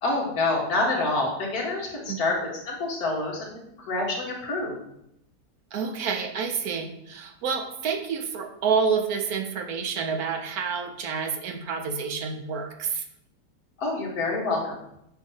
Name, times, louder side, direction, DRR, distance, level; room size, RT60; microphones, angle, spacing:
voice 1, 0.0-2.4 2.7-3.6 3.9-4.8 13.8-14.6, left 2 dB, 65° left, -2 dB, 1.9 m, -27 dB
voice 2, 5.7-13.0, right 6 dB, 70° right, 5 dB, 1.1 m, -28 dB
7.7 x 2.7 x 5.5 m, 0.79 s
omnidirectional pair, 1.8 m